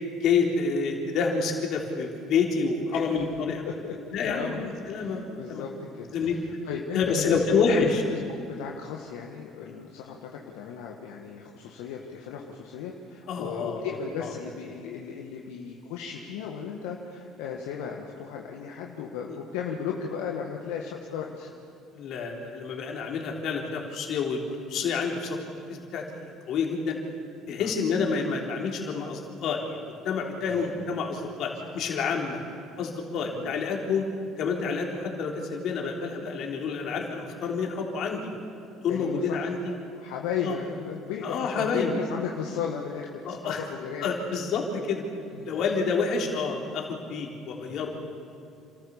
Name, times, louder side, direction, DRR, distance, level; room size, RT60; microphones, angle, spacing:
voice 1, 0.1-3.7 4.1-4.6 4.9-5.6 6.1-6.4 6.9-8.0 13.3-14.3 19.3-19.4 21.9-25.4 25.7-27.0 27.5-32.4 32.8-34.1 34.4-38.3 38.8-39.7 40.4-40.6 41.2-42.0 43.2-43.7 44.0-45.0 45.4-47.9, left 5 dB, 60° left, 0 dB, 3.7 m, -28 dB
voice 2, 3.6-3.9 4.2-5.7 6.0-8.2 8.6-21.5 27.6-27.7 30.4-30.8 31.7-31.8 33.3-33.5 38.9-39.5 40.0-44.2 45.3-45.5 47.7-47.9, left 7 dB, 80° left, 0 dB, 1.6 m, -35 dB
29.0 x 13.5 x 7.2 m, 2.4 s
hypercardioid pair, 65°, 0 cm